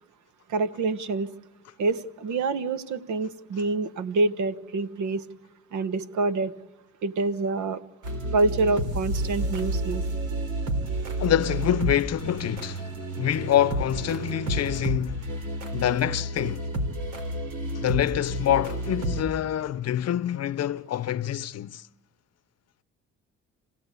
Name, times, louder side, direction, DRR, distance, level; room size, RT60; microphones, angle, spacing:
voice 1, 0.5-1.3 1.8-5.2 5.7-6.5 7.0-7.8 8.3-10.0, right 3 dB, 75° right, 1.2 m, -26 dB
sound 1, 8.0-19.2, right 1 dB, 90° right, 3.5 m, -30 dB
voice 2, 11.2-12.9 13.2-15.3 15.7-16.6 17.7-21.8, left 11 dB, 55° left, 0.7 m, -26 dB
28.0 x 16.5 x 8.3 m
cardioid pair, 90°, 30 cm